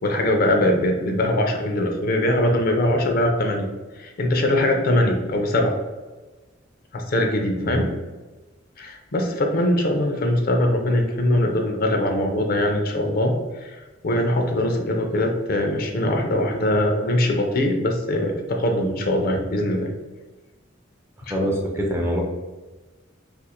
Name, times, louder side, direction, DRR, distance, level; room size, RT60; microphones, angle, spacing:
voice 1, 0.0-3.7 4.0-5.7 6.9-7.9 8.8-19.9 21.3-21.5, left 1 dB, 50° left, 3 dB, 0.5 m, -22 dB
voice 2, 21.3-22.2, equal, 15° right, 0 dB, 0.4 m, -24 dB
2.5 x 2.4 x 4.1 m, 1.2 s
head